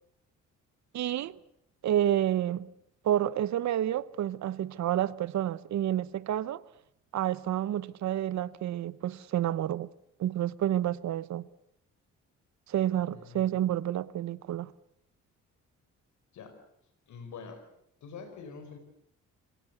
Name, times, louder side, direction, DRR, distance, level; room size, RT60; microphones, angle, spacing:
voice 1, 0.9-1.4 1.8-2.7 3.0-6.6 7.1-9.9 10.2-11.4 12.7-14.7, right 11 dB, 65° right, 1.0 m, -29 dB
voice 2, 13.0-13.6 16.3-16.5 17.1-17.6 18.0-18.8, left 5 dB, 70° left, 5.0 m, -45 dB
27.0 x 17.5 x 8.2 m
cardioid pair, 90°, 30 cm